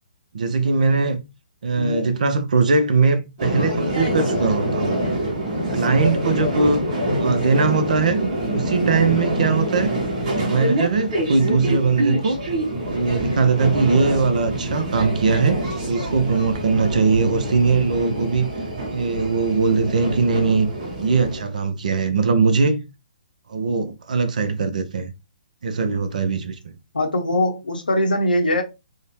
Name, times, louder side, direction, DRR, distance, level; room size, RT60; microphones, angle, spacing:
voice 1, 0.3-1.2 1.6-5.0 5.7-6.9 7.2-9.9 10.3-12.4 12.8-18.5 18.9-20.7 21.0-22.8 23.5-25.1 25.6-26.7, right 4 dB, 55° right, 0.4 m, -20 dB
voice 2, 1.7-2.1 26.9-28.6, left 1 dB, 70° left, 0.6 m, -21 dB
sound 1, 3.4-21.4, right 1 dB, 40° right, 0.9 m, -25 dB
2.6 x 2.1 x 3.0 m
figure-of-eight pair, 130°, 5 cm